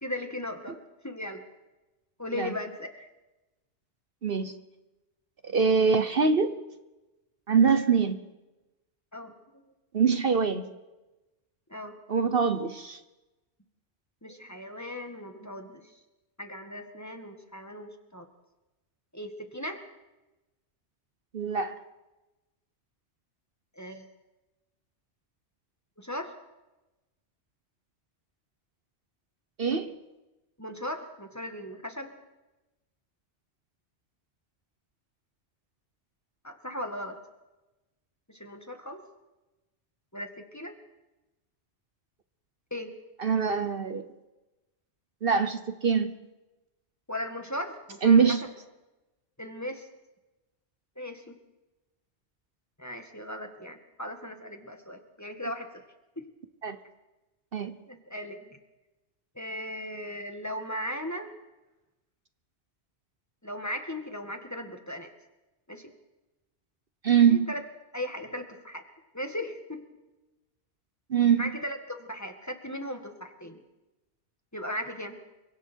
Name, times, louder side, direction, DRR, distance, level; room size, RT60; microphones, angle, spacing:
voice 1, 0.0-1.4 2.2-2.9 9.1-9.7 11.7-12.0 14.2-15.9 16.4-18.3 19.1-19.8 23.8-24.1 26.0-26.3 30.6-32.1 36.4-37.2 38.3-39.0 40.1-40.7 42.7-42.9 47.1-48.2 49.4-49.9 51.0-51.4 52.8-55.7 56.2-56.3 57.9-58.6 59.4-61.3 63.4-65.1 65.7-65.9 67.3-67.6 67.9-68.8 69.1-69.8 71.4-73.6 74.5-75.2, left 1 dB, 15° left, 5 dB, 2.0 m, -37 dB
voice 2, 4.2-4.5 5.5-6.6 7.5-8.2 9.9-10.7 12.1-13.0 21.3-21.8 29.6-30.0 43.2-44.1 45.2-46.1 48.0-48.4 56.6-56.8 57.5-57.7 67.0-67.5 71.1-71.4, right 6 dB, 55° right, 10 dB, 1.2 m, -23 dB
29.5 x 24.5 x 4.6 m, 1.1 s
omnidirectional pair, 1.2 m